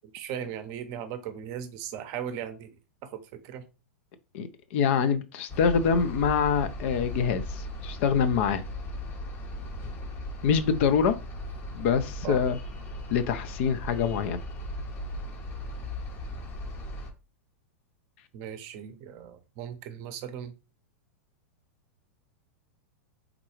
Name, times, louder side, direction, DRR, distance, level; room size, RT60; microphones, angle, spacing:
voice 1, 0.1-2.7 3.0-3.7 12.2-12.4 18.3-20.5, right 9 dB, 45° right, 0.6 m, -37 dB
voice 2, 4.3-8.6 10.4-11.2 11.7-12.6 13.1-14.4, left 6 dB, 55° left, 0.5 m, -25 dB
sound 1, 5.5-17.1, left 1 dB, 30° left, 0.8 m, -37 dB
3.6 x 2.3 x 3.1 m
hypercardioid pair, 100°, 8 cm